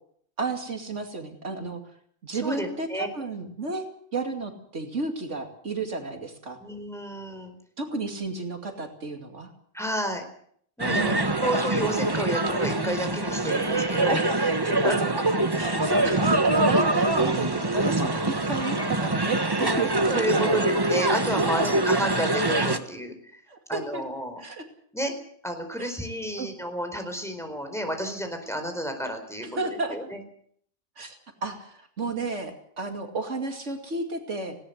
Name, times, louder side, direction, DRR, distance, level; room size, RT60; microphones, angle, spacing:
voice 1, 0.4-1.8 2.2-3.8 4.1-6.6 7.8-9.5 10.9-11.2 14.1-20.4 21.4-21.8 23.5-24.0 24.4-24.6 25.8-25.9 26.4-26.5 29.6-30.0 31.0-34.6, right 3 dB, 75° right, 5 dB, 2.8 m, -32 dB
voice 2, 2.3-3.1 6.6-7.5 9.7-10.2 10.8-14.1 14.8-15.0 20.1-23.4 23.7-24.4 24.9-25.1 25.4-30.2, equal, ahead, 5 dB, 4.5 m, -31 dB
sound 1, 10.8-22.8, right 2 dB, 20° right, 1.3 m, -24 dB
19.5 x 18.0 x 8.0 m, 0.63 s
omnidirectional pair, 1.2 m